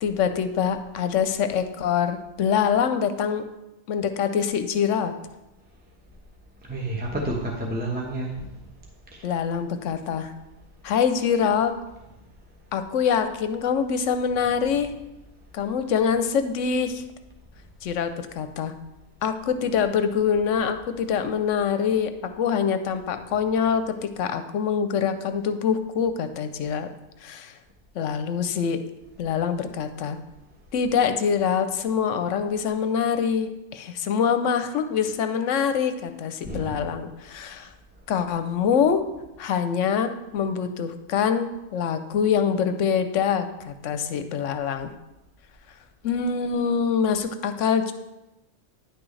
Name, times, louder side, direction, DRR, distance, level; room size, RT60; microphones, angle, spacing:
voice 1, 0.0-3.4 3.9-5.1 9.2-10.3 10.8-11.7 12.7-14.9 15.5-17.0 17.8-18.7 19.2-26.9 27.2-27.5 27.9-28.8 29.2-30.2 30.7-37.7 38.1-39.0 39.4-44.9 46.0-47.9, left 7 dB, 75° left, 9 dB, 0.9 m, -24 dB
voice 2, 6.6-8.5 9.1-9.3 36.5-36.8, right 1 dB, 10° right, -2 dB, 0.8 m, -30 dB
9.8 x 6.1 x 3.2 m, 0.97 s
omnidirectional pair, 1.4 m